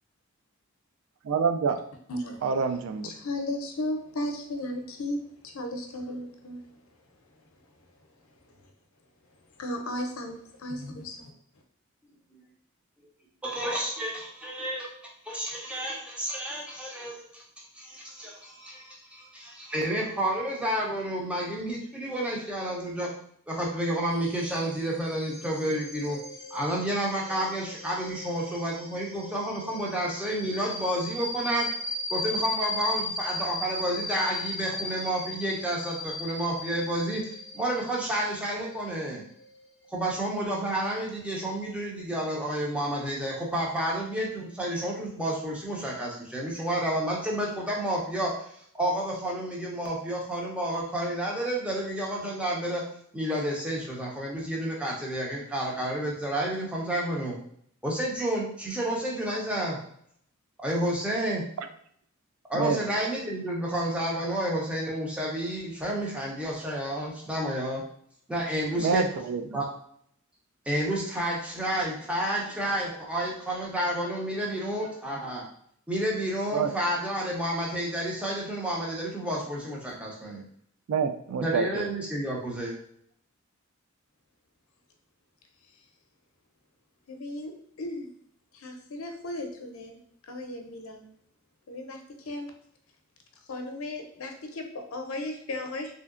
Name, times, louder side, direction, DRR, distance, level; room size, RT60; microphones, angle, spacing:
voice 1, 1.3-1.8 2.4-3.1 61.6-61.7 62.5-62.8 68.8-69.6 76.5-76.7 80.9-81.9, right 5 dB, 70° right, 8 dB, 0.3 m, -27 dB
voice 2, 2.1-2.4 3.0-5.2 5.5-6.6 9.6-11.2 87.1-88.1 88.5-90.0 90.3-91.0 91.7-92.0 92.3-92.5 93.5-95.9, left 1 dB, 75° left, 4 dB, 0.6 m, -35 dB
voice 3, 13.4-17.4 17.7-23.1 23.5-26.2 26.5-31.7 32.1-37.2 37.5-39.2 39.9-48.5 48.7-52.8 53.1-57.4 57.8-59.8 60.6-61.4 62.5-67.8 68.3-69.0 69.5-69.7 70.7-75.4 75.9-80.4 81.4-82.8, right 1 dB, 5° right, -3 dB, 0.6 m, -30 dB
sound 1, 24.1-40.4, left 2 dB, 45° right, 1.1 m, -37 dB
3.2 x 2.7 x 2.4 m, 0.65 s
head